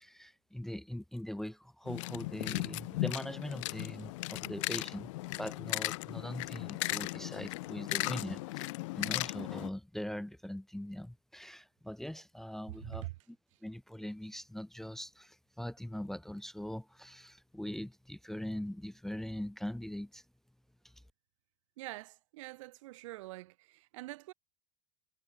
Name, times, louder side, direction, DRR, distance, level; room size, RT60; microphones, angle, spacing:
voice 1, 0.0-8.7 8.9-13.1 13.6-20.2 20.8-20.9, left 1 dB, ahead, 0.8 m, -41 dB
sound 1, 1.9-9.7, left 22 dB, 75° left, 0.7 m, -37 dB
voice 2, 12.7-13.2 13.5-13.6 21.8-24.3, right 19 dB, 80° right, 1.8 m, -45 dB
supercardioid pair, 130°, 16 cm